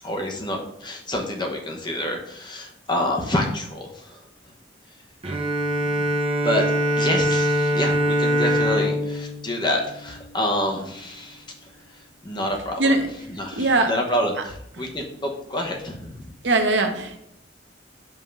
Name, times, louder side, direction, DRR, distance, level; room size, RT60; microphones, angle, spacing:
voice 1, 0.0-4.2 5.8-6.1 6.4-6.7 7.0-13.0 13.3-16.3, left 1 dB, 25° left, 1 dB, 1.0 m, -28 dB
Bowed string instrument, 5.2-10.7, equal, 30° right, 0.8 m, -23 dB
voice 2, 13.6-13.9 16.4-17.2, right 2 dB, 75° right, 5 dB, 0.8 m, -20 dB
5.5 x 3.6 x 5.2 m, 0.76 s
head